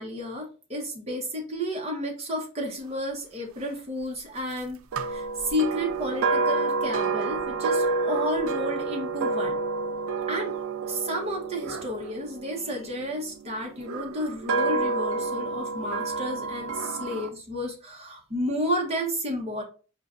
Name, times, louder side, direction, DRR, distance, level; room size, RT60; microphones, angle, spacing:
voice 1, 0.0-4.8 5.1-9.6 10.3-10.5 10.9-19.6, equal, 30° right, 0 dB, 0.8 m, -31 dB
sound 1, 4.9-13.1 13.8-17.3, right 3 dB, 80° right, 0.4 m, -29 dB
4.9 x 2.2 x 2.4 m, 0.36 s
head